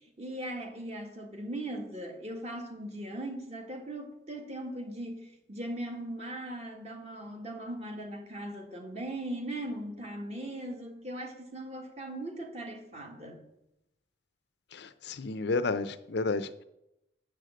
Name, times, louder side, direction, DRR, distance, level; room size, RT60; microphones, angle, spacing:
voice 1, 0.2-13.4, right 1 dB, 35° right, 3 dB, 1.6 m, -39 dB
voice 2, 14.7-16.6, left 3 dB, 60° left, 12 dB, 0.6 m, -31 dB
8.1 x 6.5 x 7.6 m, 0.85 s
head